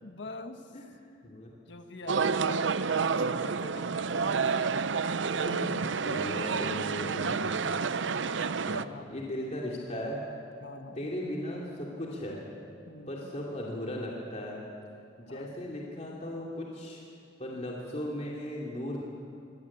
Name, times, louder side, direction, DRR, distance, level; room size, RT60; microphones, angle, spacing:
voice 1, 0.0-0.7 1.7-4.5 8.7-9.1 10.6-11.1 12.9-13.3 15.3-15.5, left 2 dB, 65° left, 6 dB, 1.6 m, -45 dB
sound 1, 2.1-8.8, right 5 dB, 70° right, 0.6 m, -29 dB
voice 2, 5.4-7.4 8.7-10.2 10.9-12.4 13.1-14.6 15.2-17.0 17.4-19.0, left 1 dB, 35° left, -3 dB, 2.8 m, -37 dB
24.5 x 17.5 x 8.6 m, 2.5 s
head